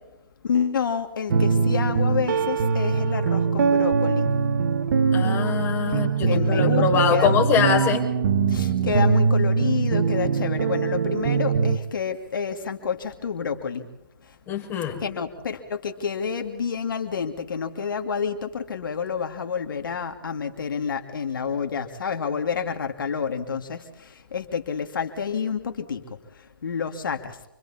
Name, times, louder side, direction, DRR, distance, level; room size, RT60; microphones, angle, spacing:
voice 1, 0.4-4.3 6.2-7.4 8.5-13.9 15.0-26.0 26.6-27.4, left 6 dB, 70° left, 5 dB, 2.5 m, -29 dB
sound 1, 1.3-11.8, right 5 dB, 60° right, 1.5 m, -22 dB
voice 2, 5.1-8.1 14.5-15.0, left 7 dB, 20° left, 1 dB, 6.4 m, -23 dB
28.5 x 25.0 x 4.3 m, 0.90 s
hypercardioid pair, 140°, 11 cm